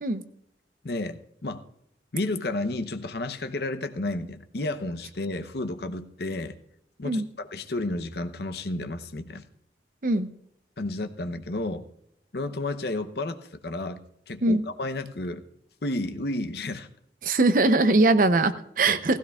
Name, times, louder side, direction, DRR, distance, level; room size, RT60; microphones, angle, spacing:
voice 1, 0.8-1.6 2.1-6.6 7.0-9.4 10.8-11.9 12.3-14.0 14.3-15.4 15.8-16.9 18.9-19.0, left 2 dB, 60° left, 8 dB, 0.8 m, -32 dB
voice 2, 17.2-19.2, right 2 dB, 50° right, 11 dB, 0.6 m, -21 dB
17.0 x 16.0 x 2.4 m, 0.74 s
head